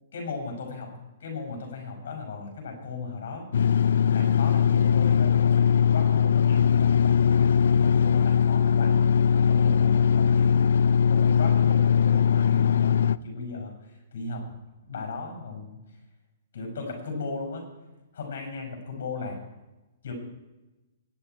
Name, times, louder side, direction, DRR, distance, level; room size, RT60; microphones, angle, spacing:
voice 1, 0.1-3.5 4.1-9.1 9.5-10.6 11.1-14.4 14.9-15.8 16.5-17.7 18.1-19.4 20.0-20.1, left 4 dB, 55° left, 2 dB, 5.6 m, -36 dB
sound 1, 3.5-13.2, left 7 dB, 80° left, 0.4 m, -20 dB
23.5 x 9.4 x 4.5 m, 1.1 s
hypercardioid pair, 180°, 0 cm